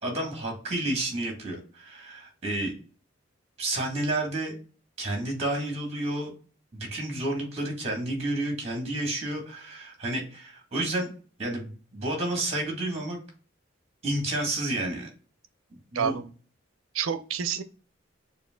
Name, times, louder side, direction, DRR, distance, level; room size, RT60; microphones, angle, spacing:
voice 1, 0.0-2.7 3.6-4.6 5.0-6.3 6.7-11.1 11.4-13.2 14.0-15.1 15.7-16.2, right 1 dB, 30° right, 2 dB, 1.6 m, -30 dB
voice 2, 15.9-16.3 16.9-17.6, right 7 dB, 90° right, 11 dB, 0.5 m, -28 dB
6.5 x 2.5 x 2.3 m, 0.39 s
head